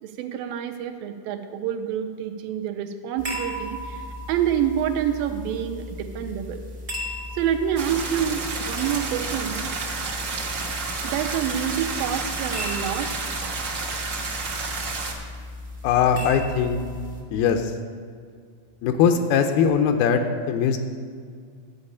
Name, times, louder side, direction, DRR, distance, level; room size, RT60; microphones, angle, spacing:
voice 1, 0.0-6.6 7.3-9.6 11.0-13.1, right 9 dB, 85° right, 6 dB, 2.4 m, -27 dB
sound 1, 3.2-17.2, left 1 dB, 40° right, 0.7 m, -37 dB
sound 2, 7.8-15.1, right 4 dB, 65° right, 1.0 m, -30 dB
voice 2, 15.8-16.8 17.3-17.7 18.8-20.8, left 7 dB, 85° left, 6 dB, 2.5 m, -21 dB
12.0 x 5.4 x 8.4 m, 2.1 s
omnidirectional pair, 4.2 m